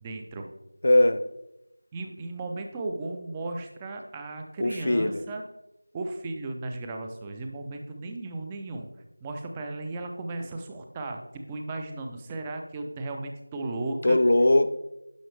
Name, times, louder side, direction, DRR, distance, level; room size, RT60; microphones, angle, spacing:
voice 1, 0.0-0.5 1.9-5.4 5.9-8.9 9.2-14.2, right 2 dB, 10° right, 4 dB, 0.5 m, -35 dB
voice 2, 0.8-1.2 4.6-5.2 14.0-14.7, left 1 dB, 45° left, 11 dB, 0.6 m, -20 dB
10.5 x 5.9 x 3.3 m, 0.89 s
figure-of-eight pair, 175°, 0 cm